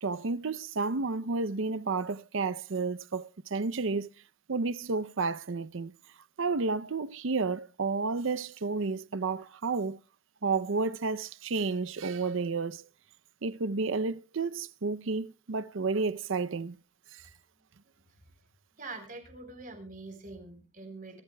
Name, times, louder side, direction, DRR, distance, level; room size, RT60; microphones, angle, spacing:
voice 1, 0.0-4.1 4.5-5.9 6.4-10.0 10.4-12.8 13.4-16.8 17.1-17.2, right 4 dB, 70° right, 0.6 m, -31 dB
voice 2, 18.8-21.2, right 3 dB, 40° right, 3.8 m, -44 dB
24.5 x 13.5 x 2.3 m
head